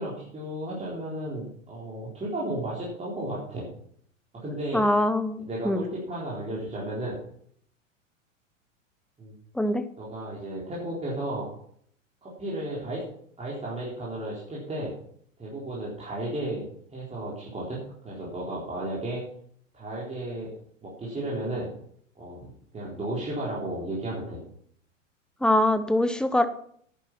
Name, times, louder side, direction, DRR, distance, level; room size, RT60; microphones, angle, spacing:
voice 1, 0.0-3.7 4.3-4.8 5.4-7.2 9.2-9.3 10.0-11.5 12.2-13.0 13.4-15.0 15.4-19.2 19.7-20.5 20.8-21.7 22.2-24.4, right 1 dB, 15° right, -6 dB, 4.0 m, -34 dB
voice 2, 4.7-5.8 9.6-9.8 25.4-26.5, left 1 dB, ahead, 11 dB, 0.8 m, -23 dB
11.0 x 9.3 x 5.9 m, 0.63 s
figure-of-eight pair, 100°, 39 cm